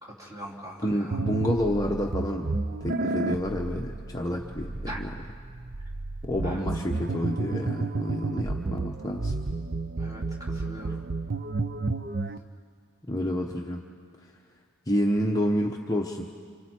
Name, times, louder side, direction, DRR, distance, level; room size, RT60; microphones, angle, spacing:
voice 1, 0.0-1.2 4.9-5.0 6.4-6.6 10.0-11.0, equal, 15° right, -4 dB, 3.6 m, -41 dB
voice 2, 0.8-2.5 2.8-5.1 6.2-9.3 13.1-13.8 14.9-16.3, equal, 15° left, 1 dB, 0.9 m, -29 dB
sound 1, 1.1-12.4, right 3 dB, 45° right, 0.6 m, -31 dB
29.0 x 27.0 x 4.5 m, 2.1 s
head